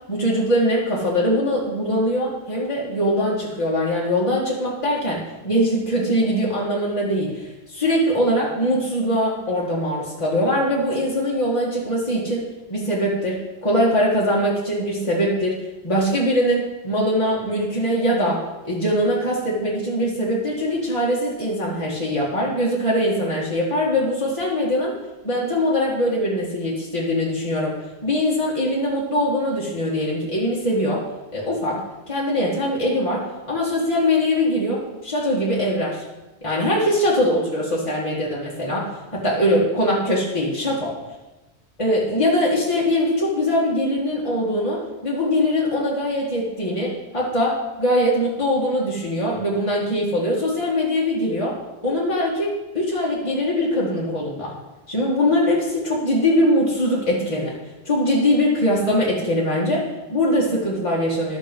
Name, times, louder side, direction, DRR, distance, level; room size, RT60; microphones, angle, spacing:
voice 1, 0.1-15.6 15.8-18.4 18.6-24.9 25.2-27.7 28.0-31.0 31.3-31.8 32.1-36.0 36.4-38.9 39.1-40.9 41.8-51.6 51.8-54.5 54.9-57.5 57.8-61.4, equal, 30° left, -6 dB, 2.1 m, -22 dB
12.0 x 6.4 x 5.5 m, 1.1 s
omnidirectional pair, 1.1 m